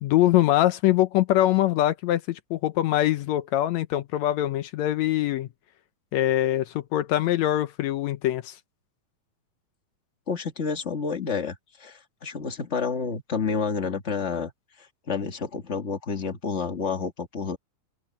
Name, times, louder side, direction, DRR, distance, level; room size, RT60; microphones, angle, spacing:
voice 1, 0.0-5.5 6.1-8.6, left 14 dB, 75° left, 1.7 m, -23 dB
voice 2, 10.3-14.5 15.1-17.6, left 5 dB, 30° left, 1.3 m, -29 dB
open air
omnidirectional pair, 3.6 m